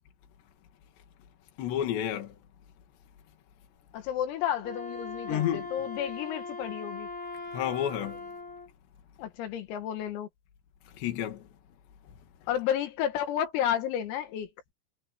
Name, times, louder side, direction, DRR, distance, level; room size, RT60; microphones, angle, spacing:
voice 1, 1.6-2.4 5.3-5.7 7.5-8.3 10.9-11.5, left 10 dB, 60° left, 4.3 m, -30 dB
voice 2, 3.9-7.1 9.2-10.3 12.5-14.5, left 10 dB, 85° left, 4.7 m, -31 dB
Wind instrument woodwind instrument, 4.6-8.7, left 3 dB, 20° right, 5.9 m, -40 dB
omnidirectional pair, 6.0 m